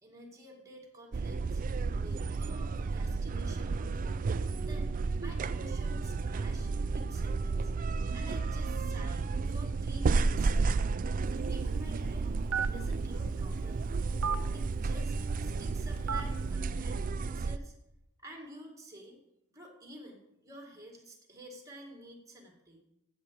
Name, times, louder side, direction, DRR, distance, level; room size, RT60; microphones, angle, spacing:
voice 1, 0.0-4.2 4.6-7.7 8.1-10.9 11.3-12.3 12.7-14.0 14.5-17.7 18.2-19.2 19.5-22.8, equal, 15° right, 2 dB, 2.2 m, -50 dB
sound 1, 1.1-17.6, right 4 dB, 40° right, 0.4 m, -32 dB
Telephone, 11.2-16.5, right 5 dB, 75° right, 0.8 m, -39 dB
16.5 x 7.2 x 4.8 m, 0.85 s
head